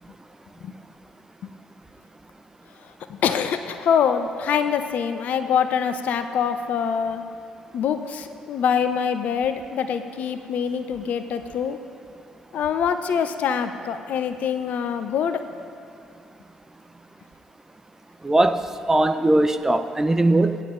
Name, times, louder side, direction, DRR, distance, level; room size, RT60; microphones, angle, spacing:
voice 1, 2.8-7.2 7.7-11.8 12.5-15.4, left 7 dB, 60° left, 9 dB, 0.5 m, -24 dB
voice 2, 18.2-20.6, right 2 dB, 15° right, 9 dB, 0.5 m, -20 dB
16.5 x 10.0 x 2.5 m, 2.4 s
figure-of-eight pair, 45°, 3 cm